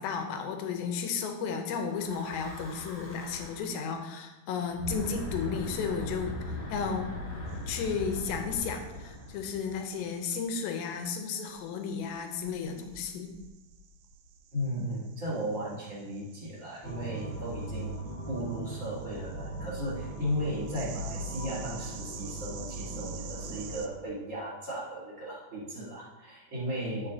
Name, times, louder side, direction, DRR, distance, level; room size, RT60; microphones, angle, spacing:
voice 1, 0.0-6.4 6.7-7.1 7.7-13.3, left 6 dB, 80° left, 5 dB, 2.6 m, -33 dB
Breathing / Wind, 1.8-3.8 4.7-10.1, left 1 dB, 45° left, 2.4 m, -39 dB
sound 1, 7.5-23.9, right 8 dB, 85° right, 3.1 m, -51 dB
voice 2, 14.5-18.0 18.3-27.1, equal, 25° right, -8 dB, 2.3 m, -35 dB
sound 2, 16.8-23.8, right 1 dB, 25° left, 1.2 m, -39 dB
11.0 x 7.1 x 2.8 m, 1.1 s
omnidirectional pair, 5.6 m